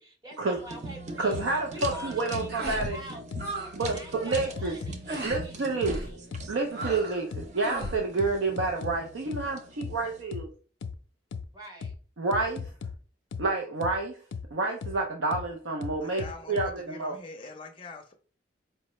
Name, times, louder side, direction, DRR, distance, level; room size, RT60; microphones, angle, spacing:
voice 1, 0.0-1.4 1.7-3.2 3.6-6.2 11.5-11.9, equal, 20° right, 0.8 m, -45 dB
sound 1, 0.6-10.2, right 3 dB, 40° right, 0.4 m, -43 dB
voice 2, 1.2-3.0 3.7-4.7 5.2-6.0 6.5-10.5 12.2-12.7 13.4-14.2 14.5-17.1, right 3 dB, 85° right, 0.5 m, -29 dB
sound 2, 1.3-1.4 1.8-1.9 2.3-2.4 2.8-2.9 3.3-3.4 3.8-3.9 4.3-4.9 5.3-5.4 5.8-5.9 6.3-6.4 6.8-6.9 7.3-7.4 7.8-8.9 9.3-9.4 9.8-9.9 10.3-10.4 10.8-10.9 11.3-11.4 11.8-11.9 12.3-12.9 13.3-13.4 13.8-13.9 14.3-14.4 14.8-14.9 15.3-15.4 15.8-16.7, left 5 dB, 85° left, 0.4 m, -36 dB
sound 3, 1.8-2.2 2.5-2.9 3.1-3.7 4.0-4.3 5.1-5.4 5.8-6.1 6.7-7.2 7.6-8.0, right 2 dB, 55° right, 0.8 m, -36 dB
voice 3, 16.0-18.1, left 2 dB, 25° left, 0.5 m, -44 dB
4.6 x 2.0 x 3.0 m
head